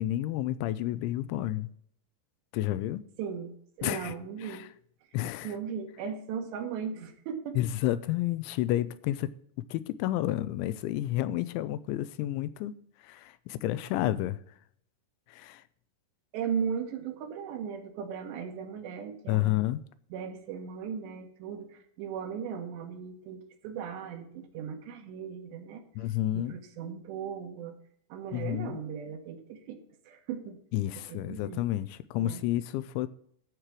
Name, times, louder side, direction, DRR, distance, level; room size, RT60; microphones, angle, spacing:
voice 1, 0.0-1.7 2.5-3.0 3.8-4.1 4.4-4.7 5.1-5.5 7.6-9.3 9.7-12.7 13.0-14.4 15.3-15.6 19.3-19.8 26.0-26.6 28.3-28.8 30.7-33.1, left 14 dB, 85° left, 2.9 m, -30 dB
voice 2, 3.2-4.7 5.4-7.6 16.3-19.5 20.1-25.8 26.3-27.8 28.1-29.8 30.1-30.6 31.1-31.6 32.2-32.4, right 7 dB, 75° right, 3.4 m, -37 dB
14.0 x 4.9 x 7.3 m
omnidirectional pair, 5.4 m